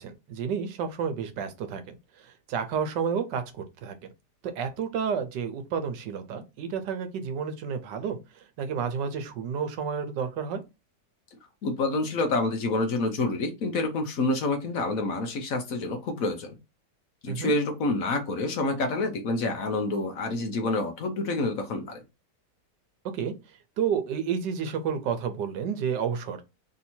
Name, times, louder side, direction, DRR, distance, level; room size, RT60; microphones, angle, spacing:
voice 1, 0.0-1.8 2.2-3.9 4.4-8.2 8.6-10.6 17.3-17.5 23.1-23.3 23.8-26.4, right 7 dB, 85° right, 1.4 m, -30 dB
voice 2, 11.6-16.6 17.2-22.0, left 2 dB, 60° left, 1.1 m, -28 dB
3.5 x 2.8 x 4.3 m
omnidirectional pair, 1.8 m